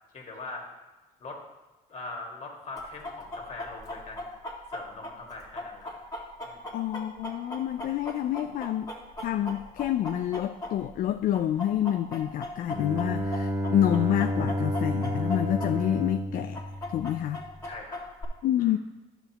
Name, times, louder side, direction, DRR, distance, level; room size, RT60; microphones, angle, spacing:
voice 1, 0.1-0.7 1.2-1.4 1.9-4.3 4.7-5.9 6.4-6.6 17.6-18.0 18.6-18.7, left 2 dB, 40° left, 0 dB, 2.0 m, -41 dB
Chicken rooster, 2.7-11.0 11.3-15.7 15.9-16.0 16.5-18.2, left 1 dB, 20° left, 1.8 m, -37 dB
voice 2, 6.7-8.9 9.2-16.6 16.9-17.4 18.4-18.8, left 11 dB, 55° left, 8 dB, 0.4 m, -28 dB
Bowed string instrument, 12.7-17.5, equal, 15° right, 0.9 m, -31 dB
10.5 x 6.9 x 2.9 m, 1.2 s
cardioid pair, 110°, 17 cm